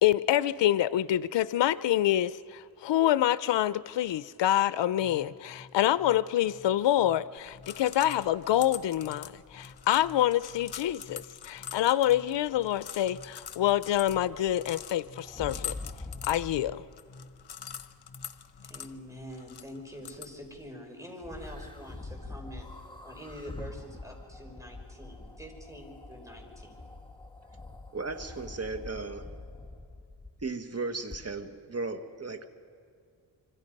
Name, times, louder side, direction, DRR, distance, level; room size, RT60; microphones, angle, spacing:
voice 1, 0.0-15.7 16.2-16.8, left 12 dB, 80° left, 16 dB, 0.6 m, -26 dB
sound 1, 4.9-19.4, left 2 dB, 45° left, 6.3 m, -52 dB
sound 2, 7.4-20.7, left 9 dB, 65° left, 1.1 m, -45 dB
sound 3, 15.2-16.8 21.2-30.5 31.1-31.2, left 2 dB, 10° left, 1.7 m, -44 dB
voice 2, 18.6-22.7 23.0-26.8, equal, 5° right, 2 dB, 5.7 m, -45 dB
voice 3, 27.9-29.3 30.4-32.5, right 3 dB, 35° right, 7 dB, 1.8 m, -35 dB
26.5 x 25.0 x 5.3 m, 2.3 s
cardioid pair, 65°, 42 cm